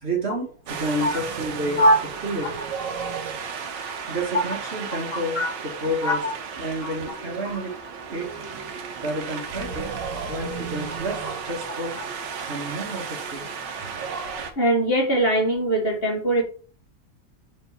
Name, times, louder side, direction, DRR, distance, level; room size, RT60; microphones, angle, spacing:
voice 1, 0.0-1.8 2.2-2.5 4.1-6.2 6.6-7.7 8.1-8.3 9.0-9.9 10.3-12.0 12.5-13.5, right 1 dB, 35° right, -1 dB, 1.4 m, -30 dB
Wind, 0.7-14.5, right 6 dB, 70° right, 1.5 m, -34 dB
voice 2, 6.0-6.3 6.8-6.9 14.6-16.4, right 1 dB, 30° left, 0 dB, 1.5 m, -21 dB
4.4 x 4.0 x 5.4 m, 0.39 s
omnidirectional pair, 2.1 m